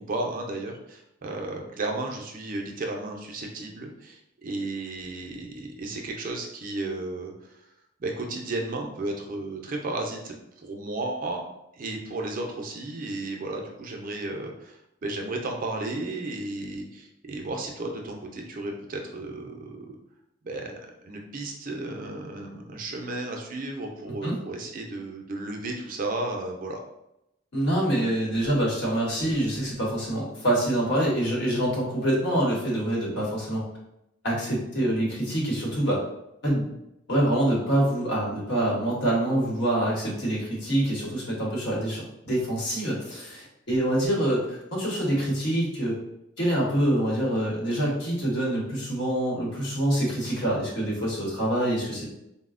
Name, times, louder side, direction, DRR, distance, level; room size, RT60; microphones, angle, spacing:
voice 1, 0.0-7.3 8.0-10.3 10.6-11.4 11.8-20.0 20.4-20.8 21.0-26.8, right 2 dB, 45° right, 1 dB, 0.4 m, -33 dB
voice 2, 27.5-33.6 34.2-36.0 36.4-36.7 37.1-46.0 46.4-52.0, right 1 dB, 60° left, -3 dB, 1.0 m, -26 dB
4.0 x 2.0 x 2.4 m, 0.85 s
head